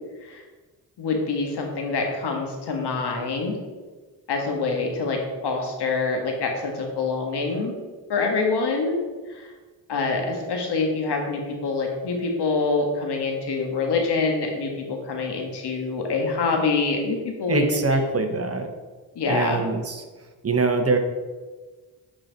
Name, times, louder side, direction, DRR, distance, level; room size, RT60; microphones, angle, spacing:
voice 1, 1.0-3.6 4.3-7.7 8.1-9.0 9.3-9.5 9.9-18.0 19.1-19.6, left 4 dB, 85° left, 2 dB, 1.6 m, -25 dB
voice 2, 17.5-18.7 19.3-20.0 20.4-21.0, right 3 dB, 35° right, 6 dB, 1.0 m, -23 dB
10.0 x 4.4 x 4.0 m, 1.3 s
cardioid pair, 90°, 40 cm